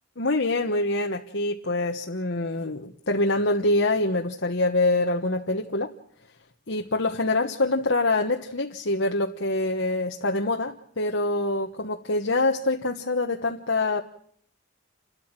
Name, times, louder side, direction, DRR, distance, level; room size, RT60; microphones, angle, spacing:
voice 1, 0.2-5.9 6.7-14.0, left 2 dB, 60° left, 2 dB, 1.3 m, -25 dB
29.5 x 13.5 x 7.5 m, 0.63 s
head